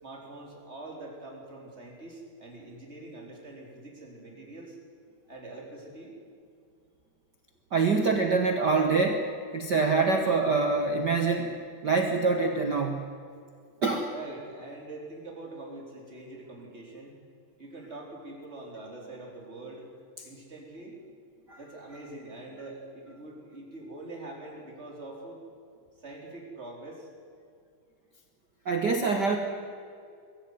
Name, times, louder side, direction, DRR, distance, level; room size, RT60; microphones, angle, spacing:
voice 1, 0.0-4.8 5.3-6.1 14.1-17.1 17.6-19.9 20.2-21.0 21.6-25.4 26.0-27.1, right 2 dB, 20° right, -1 dB, 4.0 m, -44 dB
voice 2, 7.7-13.1 13.8-14.1 21.5-21.6 28.6-29.4, right 4 dB, 55° right, 4 dB, 1.1 m, -25 dB
22.0 x 14.5 x 9.5 m, 2.4 s
omnidirectional pair, 3.7 m